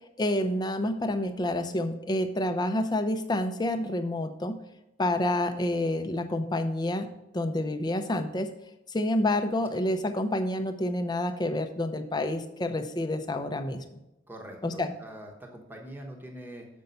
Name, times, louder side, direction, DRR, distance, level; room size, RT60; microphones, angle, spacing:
voice 1, 0.2-4.6 5.0-7.1 7.3-8.5 8.9-14.0 14.6-14.9, left 1 dB, 20° left, 8 dB, 0.5 m, -28 dB
voice 2, 14.3-16.7, right 1 dB, 10° right, 0 dB, 0.9 m, -43 dB
6.8 x 5.3 x 5.5 m, 0.89 s
head